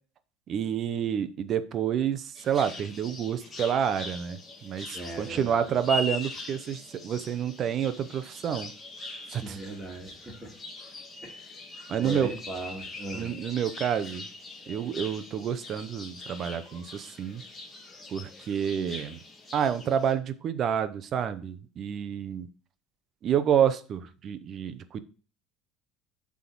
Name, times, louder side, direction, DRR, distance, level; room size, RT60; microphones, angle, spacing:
voice 1, 0.5-8.7 9.3-9.6 11.9-12.3 13.1-14.2 14.7-17.4 18.1-19.2 19.5-22.5 23.2-25.0, right 8 dB, 40° right, 12 dB, 0.7 m, -29 dB
sound 1, 2.3-20.1, left 2 dB, 20° left, 1.7 m, -42 dB
voice 2, 4.9-5.7 9.3-10.5 11.2-11.6 12.0-13.3, right 2 dB, 15° right, 0 dB, 2.1 m, -39 dB
7.9 x 3.6 x 6.1 m, 0.38 s
cardioid pair, 135°, 0 cm